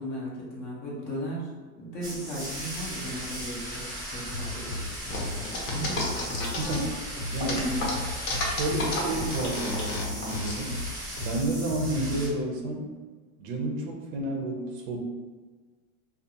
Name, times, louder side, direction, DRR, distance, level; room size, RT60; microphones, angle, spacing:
voice 1, 0.0-1.5 1.8-6.6 7.6-7.9, equal, 25° left, -5 dB, 0.5 m, -36 dB
sound 1, 2.0-12.3, right 1 dB, 10° right, 0.9 m, -37 dB
sound 2, 4.3-12.2, left 3 dB, 90° left, 1.2 m, -36 dB
sound 3, 5.1-7.0 7.4-10.5, left 2 dB, 70° left, 0.9 m, -32 dB
voice 2, 6.6-7.7 8.4-10.7 11.2-12.9 13.4-15.0, right 2 dB, 50° right, 0 dB, 0.6 m, -31 dB
2.3 x 2.3 x 2.7 m, 1.4 s
supercardioid pair, 155°, 43 cm